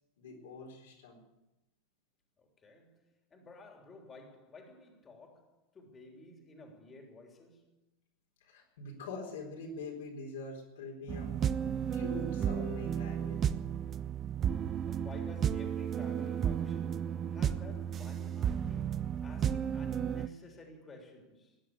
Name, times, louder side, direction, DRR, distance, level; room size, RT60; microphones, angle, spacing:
voice 1, 0.2-1.2 8.4-11.5 11.9-13.4, left 2 dB, 70° left, 4.2 m, -44 dB
voice 2, 2.4-7.8 14.9-21.6, left 2 dB, 25° left, 3.4 m, -53 dB
sound 1, 11.1-20.3, right 8 dB, 35° right, 0.6 m, -33 dB
16.5 x 10.5 x 8.2 m
figure-of-eight pair, 85°, 0 cm